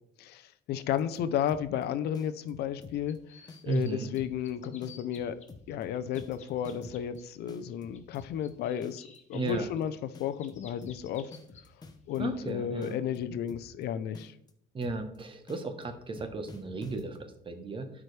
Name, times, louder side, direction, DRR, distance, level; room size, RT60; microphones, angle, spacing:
voice 1, 0.2-3.2 3.6-5.4 5.7-11.3 12.1-14.3, left 9 dB, 75° left, 13 dB, 0.6 m, -33 dB
sound 1, 0.9-1.8 2.1-3.2 3.5-3.8 4.1-4.5 4.8-7.2 7.5-8.5 8.8-9.2 9.5-9.8 10.1-12.5 12.8-13.8 14.1-14.5 14.8-15.2 15.5-17.3, left 3 dB, 25° left, 0.9 m, -50 dB
sound 2, 2.9-3.9 4.2-5.5 5.7-7.2 7.7-11.6 12.1-12.4, left 6 dB, 45° left, 1.2 m, -54 dB
voice 2, 3.6-4.1 9.3-9.7 12.2-13.0 14.7-17.9, right 3 dB, 30° right, 7 dB, 1.1 m, -35 dB
12.0 x 4.9 x 3.3 m, 0.71 s
cardioid pair, 110°, 17 cm